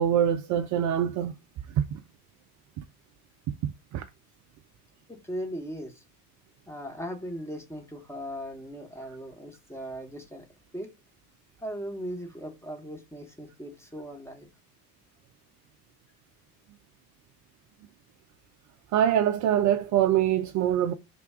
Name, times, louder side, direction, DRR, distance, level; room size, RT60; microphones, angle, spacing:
voice 1, 0.0-1.3 1.7-2.0 2.8-2.9 3.6-4.0 18.9-20.9, right 10 dB, 45° right, 0.4 m, -24 dB
voice 2, 5.1-6.0 6.7-10.4 10.7-10.9 11.6-14.5, equal, 5° left, 1.1 m, -38 dB
3.3 x 2.3 x 3.6 m
hypercardioid pair, 65°, 44 cm